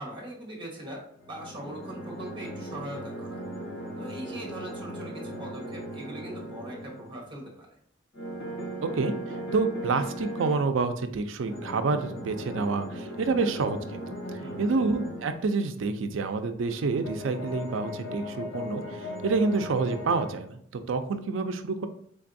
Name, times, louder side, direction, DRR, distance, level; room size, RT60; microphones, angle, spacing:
voice 1, 0.0-3.4 4.0-7.8 14.4-14.7, right 1 dB, 25° right, -2 dB, 1.2 m, -41 dB
sound 1, 1.2-7.3 8.1-10.7 11.4-15.2 16.6-20.3, equal, 80° left, 1.6 m, -38 dB
voice 2, 9.5-14.0 14.6-20.6 20.9-21.9, right 4 dB, 70° right, 9 dB, 0.4 m, -28 dB
3.8 x 3.4 x 2.6 m, 0.66 s
head